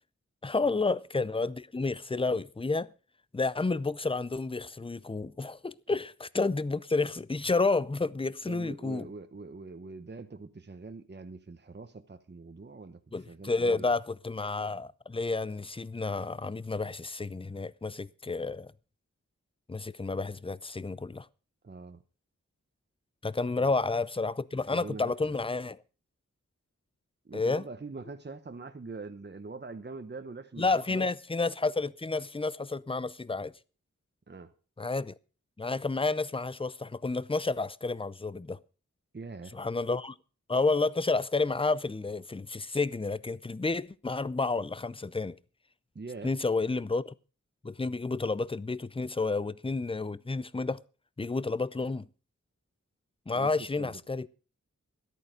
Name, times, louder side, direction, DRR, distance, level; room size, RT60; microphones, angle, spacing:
voice 1, 0.4-2.9 3.3-9.1 13.1-18.7 19.7-21.3 23.2-25.8 27.3-27.6 30.6-33.5 34.8-35.1 35.6-38.6 39.5-40.1 40.5-45.4 46.2-47.1 47.6-50.8 51.2-52.1 53.3-54.3, left 3 dB, 20° left, 0.5 m, -30 dB
voice 2, 8.4-13.0 13.3-13.9 21.6-22.0 23.5-23.7 24.5-25.3 27.2-31.1 34.3-34.5 39.1-39.5 45.9-46.3 53.3-54.0, right 3 dB, 35° right, 1.0 m, -43 dB
13.5 x 11.5 x 5.1 m
wide cardioid pair, 80°, 30 cm